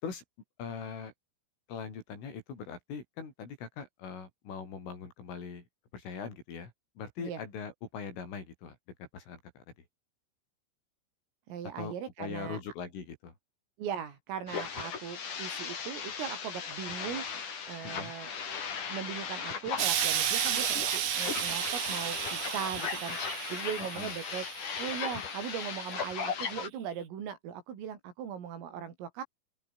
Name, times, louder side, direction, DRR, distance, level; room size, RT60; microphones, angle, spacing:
voice 1, 0.6-1.1 1.7-5.6 5.9-8.8 9.1-9.6 11.8-13.3 17.8-18.1 23.9-24.2, left 6 dB, 75° left, 9.0 m, -41 dB
voice 2, 11.5-12.6 13.8-17.3 17.7-18.4 18.9-29.2, right 8 dB, 80° right, 6.7 m, -39 dB
sound 1, 14.5-26.7, left 6 dB, 40° left, 4.5 m, -37 dB
Explosion, 19.8-25.1 25.9-26.0, right 11 dB, 60° right, 3.5 m, -32 dB
open air
omnidirectional pair, 5.8 m